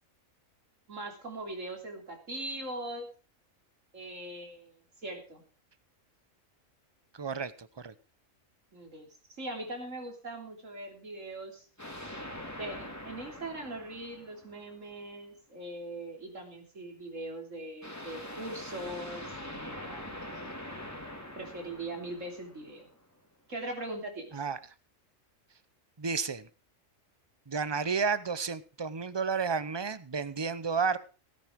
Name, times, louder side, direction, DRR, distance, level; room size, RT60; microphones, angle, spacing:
voice 1, 0.9-3.1 3.9-5.4 8.7-12.1 12.5-20.5 21.3-22.9 23.5-24.4, right 1 dB, 75° right, 3 dB, 3.7 m, -41 dB
voice 2, 7.1-7.9 24.3-24.6 26.0-26.5 27.5-31.0, right 5 dB, 25° right, 15 dB, 0.7 m, -31 dB
sound 1, 11.8-14.9 17.8-23.0, left 1 dB, 10° left, 2.5 m, -43 dB
17.5 x 9.7 x 4.7 m, 0.34 s
omnidirectional pair, 1.3 m